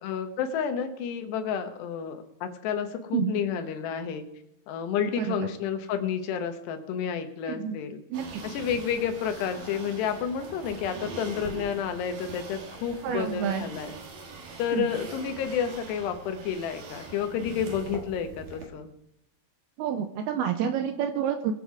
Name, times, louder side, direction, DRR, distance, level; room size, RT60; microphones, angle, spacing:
voice 1, 0.0-4.3 4.7-8.0 8.4-14.0 14.6-18.9, left 7 dB, 75° left, 7 dB, 3.2 m, -30 dB
voice 2, 5.2-5.5 7.5-7.8 8.1-8.3 13.0-13.6 14.7-14.9 19.8-21.5, right 8 dB, 80° right, 8 dB, 2.3 m, -28 dB
sound 1, 8.1-18.7, right 3 dB, 55° right, 3.1 m, -42 dB
21.5 x 7.9 x 4.8 m, 0.78 s
omnidirectional pair, 5.1 m